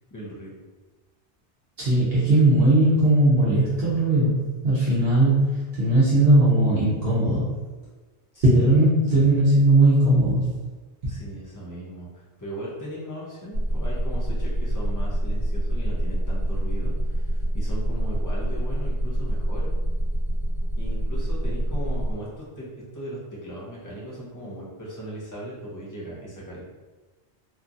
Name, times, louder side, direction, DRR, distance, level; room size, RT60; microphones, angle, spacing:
voice 1, 0.1-0.6 8.3-8.8 11.1-19.7 20.8-26.6, right 1 dB, 25° left, -7 dB, 0.4 m, -38 dB
voice 2, 1.8-7.5 8.4-10.5, right 1 dB, 60° right, -9 dB, 1.0 m, -19 dB
sound 1, 13.5-22.1, equal, 75° left, 1.2 m, -26 dB
2.9 x 2.4 x 2.5 m, 1.3 s
omnidirectional pair, 1.2 m